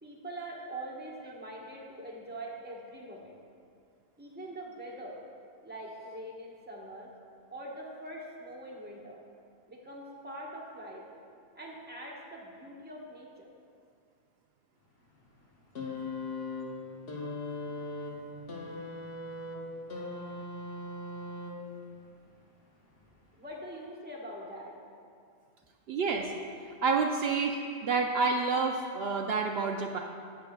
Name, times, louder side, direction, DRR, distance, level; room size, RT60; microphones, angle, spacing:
voice 1, 0.0-3.3 4.2-5.2 5.6-7.1 7.5-9.2 9.7-11.0 11.5-13.5 23.4-24.8, right 1 dB, 10° right, -3 dB, 1.1 m, -43 dB
sound 1, 15.7-21.9 23.0-23.1, left 2 dB, 60° left, 1.2 m, -39 dB
voice 2, 25.9-26.3 26.8-30.0, right 4 dB, 70° right, 2 dB, 0.8 m, -29 dB
16.0 x 6.7 x 2.3 m, 2.3 s
omnidirectional pair, 1.1 m